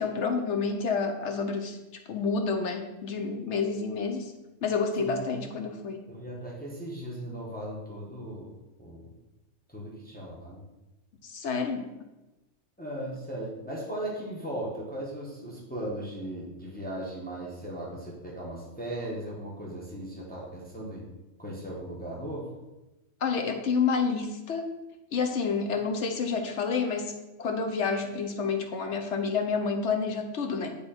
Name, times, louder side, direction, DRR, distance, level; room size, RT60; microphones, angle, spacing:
voice 1, 0.0-1.8 2.1-4.3 4.6-6.0 11.2-11.9 23.2-24.7 25.1-27.1 27.4-30.8, left 5 dB, 65° left, 4 dB, 1.0 m, -29 dB
voice 2, 5.0-5.4 6.1-8.5 8.8-9.0 9.7-10.6 12.8-21.1 21.4-22.5, right 1 dB, 5° left, -5 dB, 1.4 m, -37 dB
9.4 x 3.5 x 4.4 m, 1.0 s
omnidirectional pair, 1.3 m